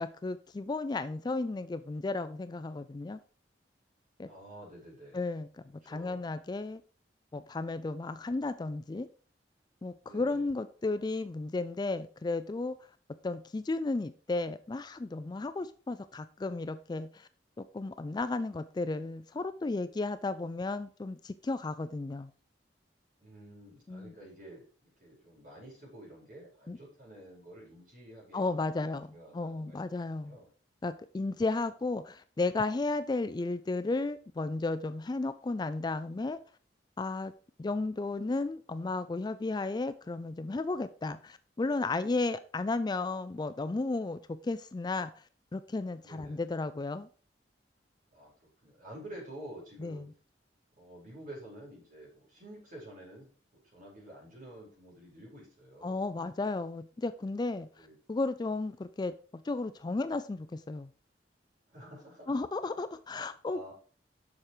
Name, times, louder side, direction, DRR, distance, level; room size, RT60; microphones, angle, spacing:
voice 1, 0.0-3.2 4.2-4.3 5.1-5.5 5.9-6.8 7.3-9.1 9.8-12.8 13.2-17.3 17.6-22.3 23.9-24.1 26.7-26.8 28.3-29.1 29.3-30.4 30.8-36.4 37.0-37.3 37.6-45.2 45.5-47.1 49.8-50.1 55.8-60.9 62.3-63.6, left 3 dB, 25° left, 13 dB, 0.3 m, -34 dB
voice 2, 4.2-5.2 5.8-6.2 10.0-10.5 23.2-29.8 30.1-30.5 46.0-46.4 48.1-50.0 50.8-56.0 57.8-58.0 61.7-62.3 63.1-63.7, right 1 dB, 50° right, -3 dB, 4.8 m, -50 dB
7.3 x 5.9 x 4.9 m, 0.42 s
head